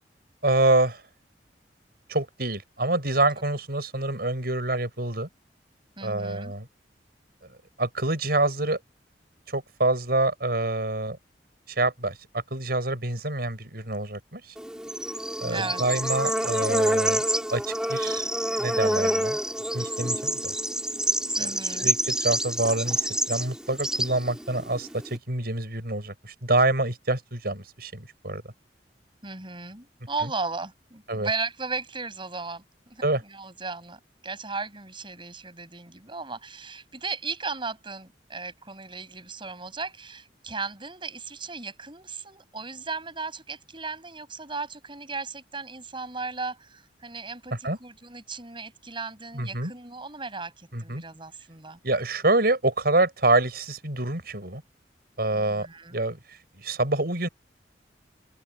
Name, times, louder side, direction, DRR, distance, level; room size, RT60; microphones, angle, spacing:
voice 1, 0.4-1.0 2.1-5.3 6.0-6.7 7.8-8.8 9.5-11.2 11.7-14.5 15.4-17.2 17.5-18.3 18.6-19.4 19.7-20.6 21.4-28.4 30.2-30.3 31.1-31.3 33.0-33.2 47.6-47.8 49.3-49.7 50.7-51.0 51.8-54.6 55.2-55.7 55.9-57.3, right 2 dB, 60° right, 7.0 m, -26 dB
voice 2, 6.0-6.5 15.5-15.8 21.4-21.9 29.2-51.8 55.3-56.0, right 4 dB, 30° right, 8.0 m, -36 dB
Bird / Insect, 14.6-25.2, right 1 dB, 5° right, 3.8 m, -27 dB
open air
head